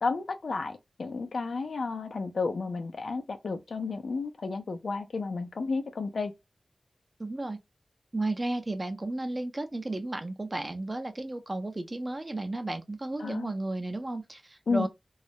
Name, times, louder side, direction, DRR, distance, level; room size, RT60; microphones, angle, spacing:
voice 1, 0.0-6.3 13.2-13.5 14.7-14.9, left 4 dB, 80° left, 0.5 m, -32 dB
voice 2, 7.2-7.6 8.1-14.9, right 2 dB, 30° right, 0.6 m, -33 dB
2.3 x 2.0 x 2.8 m
wide cardioid pair, 70°, 0 cm